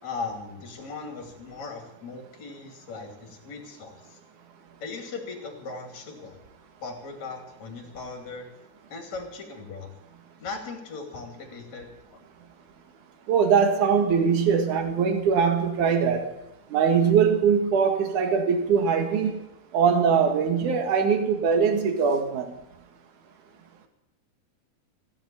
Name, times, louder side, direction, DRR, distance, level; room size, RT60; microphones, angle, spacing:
voice 1, 0.0-4.2 4.8-6.4 6.8-8.5 8.9-9.9 10.4-11.9 12.1-12.2, left 4 dB, 50° left, 4 dB, 3.6 m, -38 dB
voice 2, 13.3-16.3 16.7-19.4 19.7-22.5, right 6 dB, 60° right, 5 dB, 3.0 m, -22 dB
16.5 x 8.4 x 8.6 m, 0.89 s
omnidirectional pair, 4.3 m